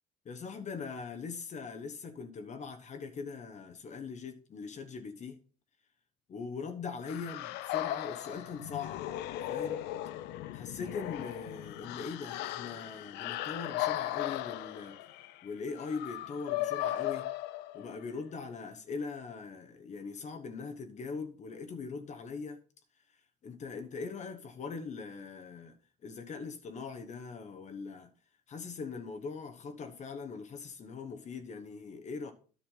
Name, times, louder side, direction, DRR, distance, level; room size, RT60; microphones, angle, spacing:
voice 1, 0.2-5.4 6.3-9.1 9.5-9.8 10.5-15.0 15.4-17.3 17.7-22.6 23.1-25.8 26.0-28.1 28.5-32.3, left 5 dB, 45° left, 1.2 m, -41 dB
sound 1, 7.0-18.1, left 14 dB, 90° left, 0.6 m, -37 dB
10.5 x 5.6 x 5.6 m
cardioid pair, 110°, 17 cm